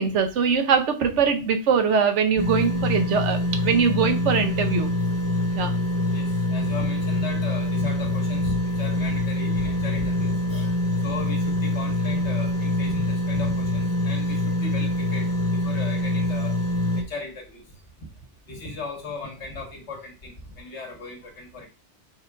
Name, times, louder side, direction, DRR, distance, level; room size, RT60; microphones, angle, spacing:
voice 1, 0.0-4.9 5.5-5.7, right 6 dB, 90° right, 6 dB, 1.1 m, -22 dB
sound 1, 2.4-17.0, left 2 dB, 15° left, 0.8 m, -25 dB
voice 2, 6.1-10.7 11.0-16.6 16.9-17.6 18.5-21.7, left 3 dB, 75° left, 0 dB, 1.6 m, -37 dB
4.6 x 2.5 x 4.6 m, 0.30 s
omnidirectional pair, 1.2 m